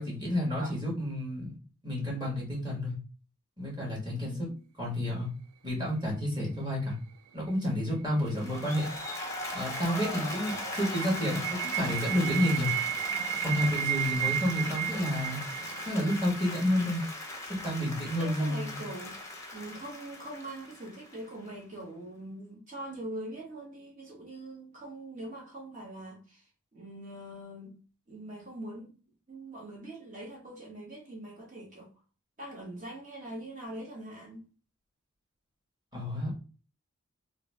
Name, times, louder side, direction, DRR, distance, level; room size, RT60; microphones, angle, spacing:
voice 1, 0.0-1.5 1.8-2.9 3.6-4.3 4.8-5.3 5.6-6.9 7.3-8.9 9.5-11.4 11.7-12.7 13.4-15.4 15.8-17.0 17.6-18.8 35.9-36.3, equal, 20° right, 1.4 m, -30 dB
voice 2, 4.2-4.6 18.2-19.2 19.5-27.8 28.1-28.9 29.3-31.9 32.4-34.4, right 1 dB, 35° right, 1.0 m, -43 dB
Applause, 8.3-21.5, left 2 dB, 15° left, 0.5 m, -39 dB
sound 1, 8.3-17.3, right 12 dB, 75° right, 0.3 m, -35 dB
3.0 x 2.6 x 3.2 m
head